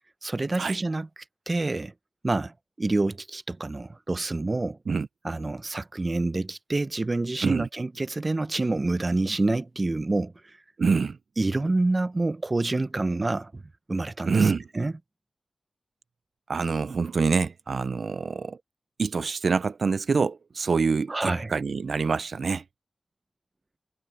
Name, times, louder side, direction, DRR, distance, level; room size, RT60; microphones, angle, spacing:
voice 1, 0.2-1.1 1.5-1.9 2.2-4.8 5.2-10.3 11.4-13.6 13.9-14.5 14.7-14.9 21.1-21.5, right 2 dB, 35° right, 0.6 m, -27 dB
voice 2, 10.8-11.2 14.3-14.6 16.5-18.6 19.0-22.6, right 5 dB, 75° right, 0.4 m, -25 dB
wide cardioid pair, 90°, 0 cm